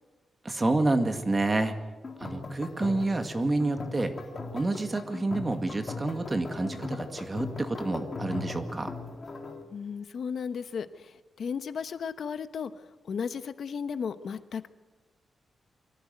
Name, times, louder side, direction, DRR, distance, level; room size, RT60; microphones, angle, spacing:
voice 1, 0.4-1.7 2.2-4.1 4.5-8.9, right 2 dB, 25° right, 6 dB, 2.1 m, -28 dB
sound 1, 2.0-9.6, left 3 dB, 35° left, 2.8 m, -39 dB
voice 2, 9.7-14.7, left 6 dB, 65° left, 11 dB, 1.0 m, -35 dB
24.0 x 15.5 x 9.4 m, 1.2 s
wide cardioid pair, 125°, 0 cm